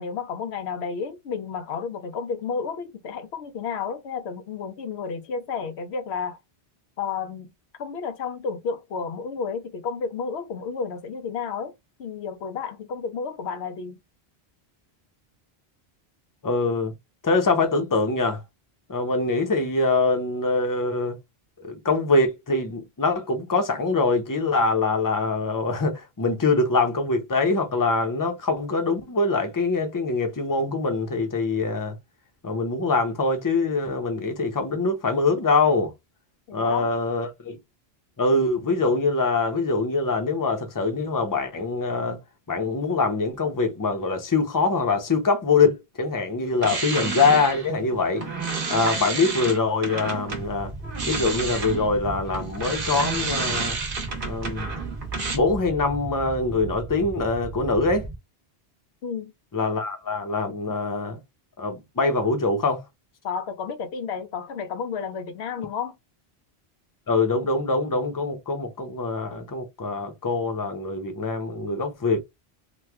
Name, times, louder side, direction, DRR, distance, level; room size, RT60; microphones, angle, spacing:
voice 1, 0.0-6.4 7.0-7.5 7.8-11.7 12.0-14.0 36.5-36.9 59.0-59.3 63.2-65.9, left 5 dB, 85° left, 0.9 m, -31 dB
voice 2, 16.4-16.9 17.2-18.4 18.9-21.2 21.6-32.0 32.4-35.9 36.5-37.6 38.2-42.2 42.5-48.3 48.7-50.7 51.1-53.8 54.2-54.7 55.3-58.1 59.5-61.2 61.6-62.8 67.1-72.2, left 3 dB, 20° left, 0.6 m, -24 dB
sound 1, 46.5-50.5 50.8-55.4, right 4 dB, 60° right, 1.2 m, -30 dB
sound 2, 50.3-58.2, right 3 dB, 20° right, 0.4 m, -36 dB
3.1 x 2.2 x 3.4 m
omnidirectional pair, 1.1 m